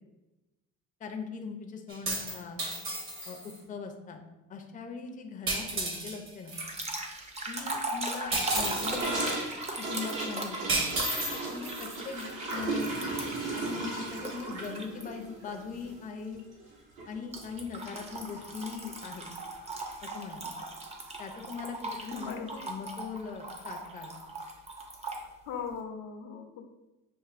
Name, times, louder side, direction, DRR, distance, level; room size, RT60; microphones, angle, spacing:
voice 1, 1.0-2.6 3.3-4.2 4.5-6.6 7.5-9.2 9.8-10.6 11.5-13.0 13.6-16.4 17.1-19.3 20.0-20.5 21.2-24.2, left 5 dB, 25° left, 3 dB, 0.5 m, -40 dB
sound 1, 1.9-3.6 5.5-6.7 8.3-9.0 10.7-12.2, right 2 dB, 40° right, 1.0 m, -33 dB
sound 2, 6.6-13.5 14.2-15.0 15.5-15.8 17.3-25.2, right 2 dB, 20° right, 0.6 m, -39 dB
Gurgling / Toilet flush, 8.5-16.7 17.0-17.1 17.4-17.8 18.1-18.2 18.5-18.6 19.6-19.7, right 2 dB, 70° right, 1.5 m, -36 dB
voice 2, 22.1-22.7 25.5-26.7, left 6 dB, 80° left, 4 dB, 0.7 m, -39 dB
6.9 x 2.5 x 2.5 m, 1.0 s
cardioid pair, 120°, 32 cm